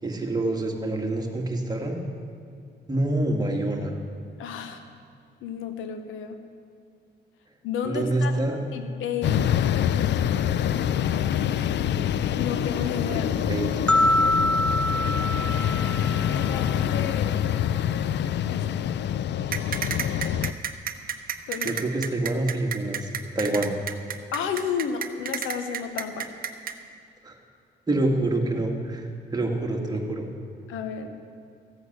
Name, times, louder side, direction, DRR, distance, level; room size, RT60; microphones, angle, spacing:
voice 1, 0.0-2.0 2.9-3.9 7.9-8.6 13.1-13.8 21.6-23.1 23.4-23.7 27.2-27.4 27.9-29.0 29.3-30.3, right 2 dB, 20° right, 1 dB, 1.9 m, -26 dB
voice 2, 4.4-4.8 5.4-6.4 7.6-8.4 8.7-9.5 12.3-13.4 15.3-15.5 16.3-17.4 18.5-18.6 21.5-21.8 24.3-26.3 30.7-31.1, left 7 dB, 90° left, 8 dB, 1.0 m, -32 dB
sound 1, 9.2-20.5, left 10 dB, 65° left, 0.4 m, -25 dB
sound 2, 13.9-17.0, left 1 dB, 5° left, 0.5 m, -25 dB
sound 3, 19.5-26.7, right 8 dB, 45° right, 0.8 m, -30 dB
15.0 x 8.3 x 6.1 m, 2.3 s
cardioid pair, 90°, 20 cm